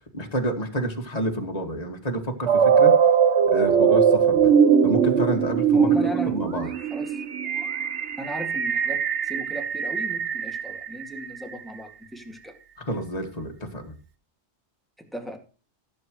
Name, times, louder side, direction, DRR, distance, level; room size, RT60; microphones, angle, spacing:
voice 1, 0.1-2.9 3.5-4.5 4.8-5.9 6.2-6.7 12.8-13.9, right 1 dB, 35° left, 2.2 m, -29 dB
sound 1, 2.5-11.4, right 7 dB, 85° right, 1.3 m, -21 dB
voice 2, 5.7-7.2 7.6-7.7 8.2-12.6 15.0-15.4, equal, ahead, 2.1 m, -37 dB
16.5 x 8.2 x 3.1 m
omnidirectional pair, 1.2 m